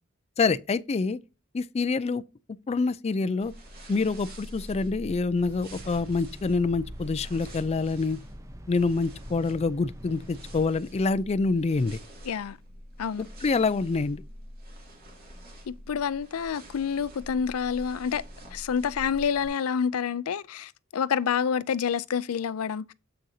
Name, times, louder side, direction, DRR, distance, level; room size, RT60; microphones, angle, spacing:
voice 1, 0.4-1.2 1.5-2.2 2.7-3.5 3.9-8.2 8.7-12.0 13.4-14.2, left 4 dB, 30° left, 0.4 m, -26 dB
sound 1, 3.4-19.5, equal, 45° right, 2.7 m, -45 dB
sound 2, 5.4-10.7, right 1 dB, 15° right, 0.7 m, -46 dB
voice 2, 12.3-12.6 13.0-13.2 15.7-18.2 18.5-22.9, left 7 dB, 90° left, 0.4 m, -28 dB
7.7 x 6.3 x 2.7 m
head